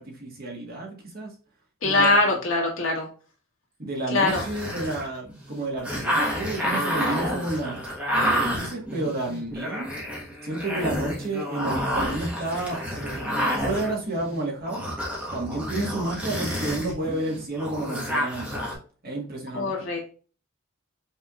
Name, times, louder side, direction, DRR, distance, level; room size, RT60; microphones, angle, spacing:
voice 1, 0.0-1.3 1.8-2.2 3.8-7.8 8.1-9.9 10.4-14.8 15.3-18.6 19.0-19.7, right 2 dB, 45° right, -1 dB, 1.4 m, -31 dB
voice 2, 1.8-3.1 4.1-4.4 19.5-20.1, left 2 dB, 70° left, -2 dB, 1.8 m, -22 dB
sound 1, 4.3-18.7, equal, 5° right, 1.3 m, -29 dB
5.6 x 3.5 x 2.4 m, 0.39 s
head